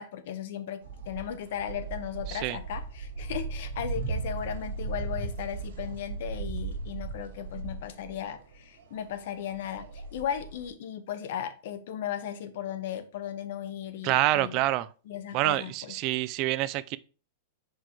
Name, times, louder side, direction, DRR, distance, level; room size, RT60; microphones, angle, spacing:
voice 1, 0.0-14.6 15.1-16.0, left 9 dB, 65° left, 0.9 m, -36 dB
sound 1, 0.8-10.7, right 4 dB, 75° right, 1.7 m, -37 dB
voice 2, 14.0-14.9 15.3-17.0, right 16 dB, 40° right, 0.3 m, -27 dB
4.9 x 4.7 x 4.5 m
supercardioid pair, 150°, 0 cm